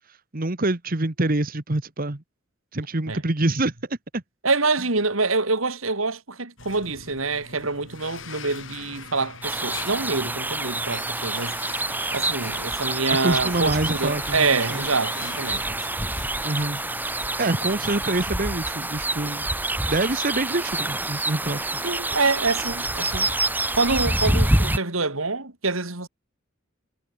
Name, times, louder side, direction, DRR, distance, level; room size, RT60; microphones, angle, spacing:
voice 1, 0.1-2.2 2.7-4.2 13.1-14.8 16.4-16.8 17.4-21.7, right 2 dB, 45° right, 1.5 m, -26 dB
voice 2, 4.4-11.6 12.1-15.8 21.8-23.3 23.8-26.1, right 3 dB, 85° right, 3.3 m, -26 dB
sound 1, 6.6-19.7 20.0-20.2 21.0-21.1 22.2-23.6, left 4 dB, 65° left, 5.5 m, -43 dB
sound 2, 9.4-24.8, right 2 dB, 10° right, 1.7 m, -27 dB
head